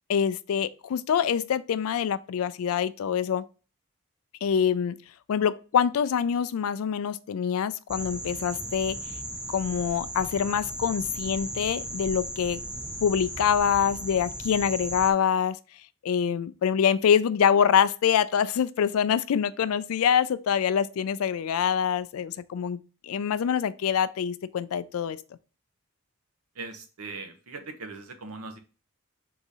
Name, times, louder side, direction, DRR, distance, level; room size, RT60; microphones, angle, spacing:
voice 1, 0.1-3.4 4.4-5.0 5.3-9.0 9.5-12.6 13.0-15.6 16.0-25.2, left 8 dB, 75° left, 0.3 m, -25 dB
sound 1, 7.9-15.1, right 1 dB, 5° right, 0.3 m, -36 dB
voice 2, 26.6-28.6, right 3 dB, 80° right, 0.8 m, -40 dB
3.8 x 2.7 x 4.7 m
head